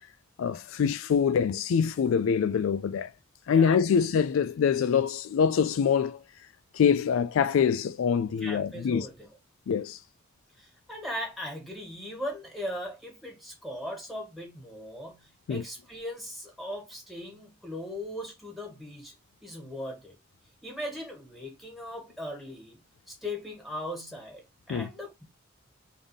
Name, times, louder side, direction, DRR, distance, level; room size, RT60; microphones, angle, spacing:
voice 1, 0.4-3.1 3.5-6.2 6.7-9.1 9.7-10.0 15.5-15.6 24.7-24.9, left 7 dB, 90° left, 0.3 m, -25 dB
voice 2, 3.5-4.1 8.4-9.3 10.6-19.1 19.4-20.2 20.6-25.2, left 1 dB, ahead, 1.9 m, -39 dB
4.0 x 3.5 x 3.5 m
head